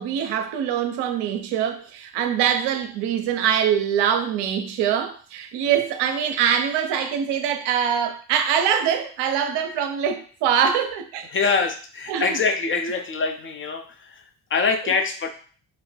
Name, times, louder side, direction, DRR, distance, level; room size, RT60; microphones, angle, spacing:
voice 1, 0.0-11.3 12.1-12.4, right 8 dB, 55° right, 0.6 m, -23 dB
voice 2, 11.3-15.3, left 4 dB, 25° left, 0.5 m, -24 dB
2.6 x 2.1 x 3.2 m
hypercardioid pair, 50°, 48 cm